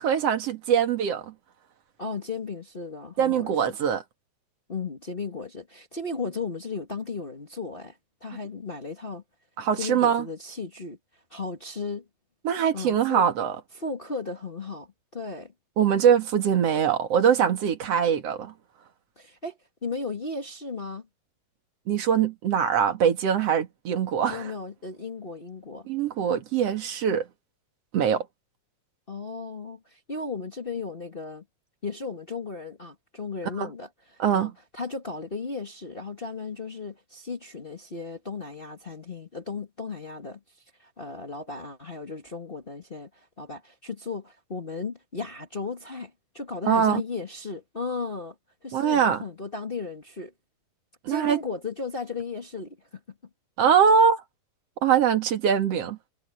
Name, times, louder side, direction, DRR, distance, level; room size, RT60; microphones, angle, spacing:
voice 1, 0.0-1.3 3.2-4.0 9.6-10.3 12.4-13.6 15.8-18.5 21.9-24.5 25.9-27.2 27.9-28.3 33.6-33.7 34.2-34.5 46.7-47.0 48.7-49.2 51.0-51.4 53.6-54.2 54.8-56.0, right 7 dB, 50° right, 2.5 m, -22 dB
voice 2, 2.0-3.7 4.7-9.2 9.7-11.0 11.3-12.1 12.7-13.3 13.7-14.9 15.1-15.5 19.1-21.0 24.3-25.9 29.1-31.4 31.8-40.4 40.8-48.3 48.6-50.3 51.1-53.0, left 4 dB, 50° left, 0.6 m, -35 dB
omnidirectional pair, 4.4 m